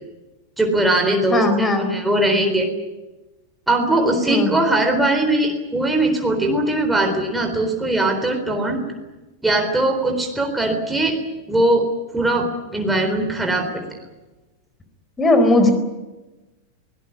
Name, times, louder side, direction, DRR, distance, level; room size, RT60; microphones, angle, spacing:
voice 1, 0.6-2.7 3.7-8.8 9.4-11.2 11.5-11.9 12.1-13.8, right 2 dB, 5° right, 2 dB, 4.0 m, -20 dB
voice 2, 1.3-1.9 4.3-4.6 15.2-15.7, left 2 dB, 15° left, 9 dB, 4.2 m, -17 dB
23.0 x 18.5 x 9.9 m, 1.1 s
figure-of-eight pair, 90°, 0 cm